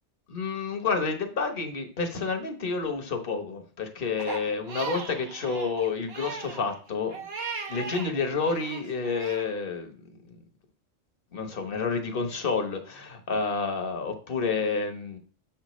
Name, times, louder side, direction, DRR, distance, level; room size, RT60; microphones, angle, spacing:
voice 1, 0.3-7.2 7.7-10.4 11.3-15.2, left 4 dB, 50° left, 5 dB, 1.2 m, -29 dB
Crying sobbing, 4.2-8.1 8.5-9.5, right 5 dB, 55° right, 1.3 m, -38 dB
7.3 x 5.8 x 3.0 m, 0.41 s
omnidirectional pair, 1.3 m